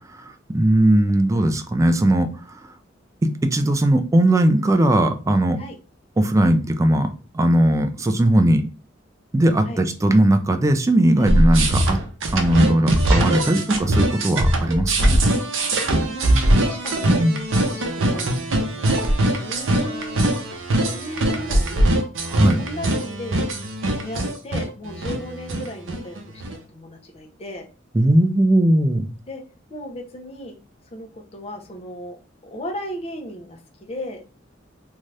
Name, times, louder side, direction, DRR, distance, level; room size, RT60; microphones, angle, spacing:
voice 1, 0.2-2.6 3.2-5.6 6.2-8.6 9.3-12.0 12.3-15.2 17.1-17.4 22.3-22.6 27.9-29.1, right 1 dB, 15° right, 7 dB, 0.3 m, -18 dB
sound 1, 11.2-26.6, right 1 dB, 80° right, 0.6 m, -21 dB
voice 2, 15.6-17.2 17.7-20.4 20.9-22.0 22.6-23.5 24.0-27.7 29.3-29.4 29.7-30.6 30.9-34.2, equal, 30° left, 2 dB, 0.6 m, -36 dB
2.7 x 2.3 x 3.2 m, 0.34 s
head